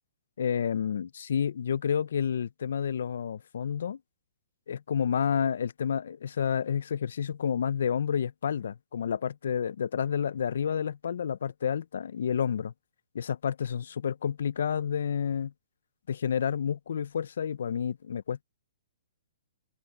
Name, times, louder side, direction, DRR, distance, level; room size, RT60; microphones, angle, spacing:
voice 1, 0.4-4.0 4.7-12.7 13.1-15.5 16.1-18.4, left 7 dB, 70° left, 0.7 m, -30 dB
open air
hypercardioid pair, 135°, 0 cm